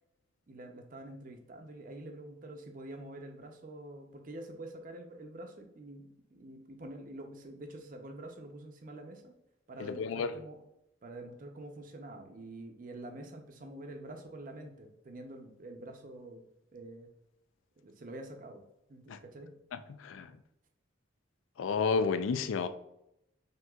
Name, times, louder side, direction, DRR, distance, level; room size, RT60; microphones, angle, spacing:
voice 1, 0.5-9.3 9.7-10.6 11.0-16.4 16.7-17.1 17.8-18.6 18.9-19.5, right 1 dB, 45° right, 0.6 m, -46 dB
voice 2, 9.8-10.3 19.1-19.2 19.7-20.4 21.6-22.7, left 5 dB, 80° left, 0.4 m, -31 dB
5.9 x 2.8 x 2.3 m
head